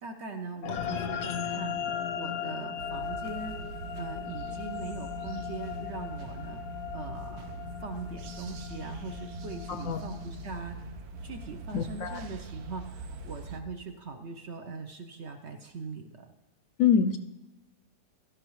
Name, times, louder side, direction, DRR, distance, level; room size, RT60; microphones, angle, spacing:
voice 1, 0.0-1.8 2.2-3.6 3.9-6.6 6.9-7.5 7.8-10.8 11.2-16.2, right 4 dB, 55° right, 5 dB, 0.8 m, -41 dB
sound 1, 0.6-11.3, left 7 dB, 90° left, 1.3 m, -37 dB
sound 2, 2.8-13.6, right 3 dB, 75° right, 1.2 m, -43 dB
voice 2, 9.7-10.0 11.7-12.2 16.8-17.2, left 7 dB, 70° left, 8 dB, 0.8 m, -25 dB
16.0 x 12.5 x 3.1 m, 1.1 s
omnidirectional pair, 1.7 m